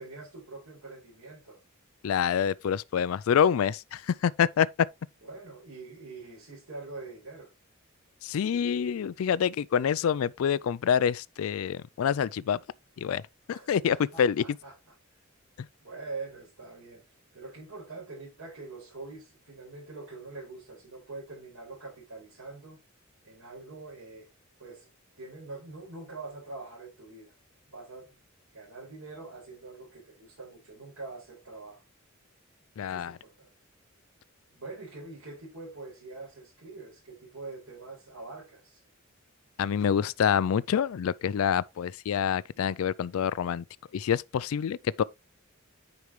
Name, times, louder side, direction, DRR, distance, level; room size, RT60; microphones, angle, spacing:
voice 1, 0.0-1.6 5.2-7.5 13.5-14.9 15.8-17.0 17.3-22.8 23.2-24.3 24.6-24.9 25.2-27.3 27.7-28.2 28.5-31.8 32.8-33.5 34.5-38.8, right 3 dB, 75° right, 5.5 m, -44 dB
voice 2, 2.0-4.7 8.2-12.6 13.0-13.2 13.5-14.4 32.8-33.2 39.6-43.6 43.9-45.0, left 8 dB, 80° left, 0.4 m, -26 dB
9.6 x 5.1 x 3.1 m
head